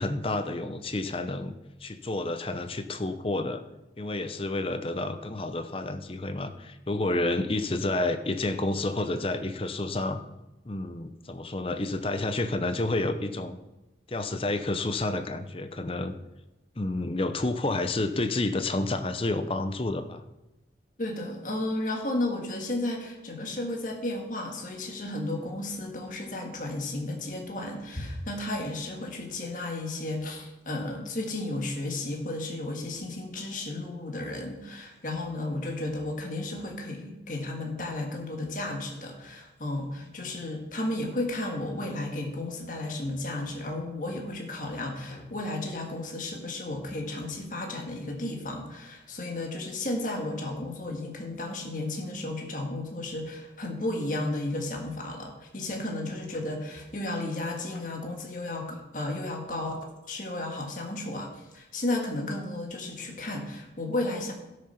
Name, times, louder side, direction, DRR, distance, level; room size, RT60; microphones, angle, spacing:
voice 1, 0.0-1.5 1.8-3.6 4.0-10.2 10.6-13.6 14.1-16.2 16.8-20.2, left 2 dB, 30° left, 9 dB, 0.7 m, -30 dB
voice 2, 21.0-59.8 60.1-64.3, left 2 dB, 45° left, 1 dB, 1.7 m, -33 dB
12.5 x 6.6 x 5.8 m, 1.0 s
head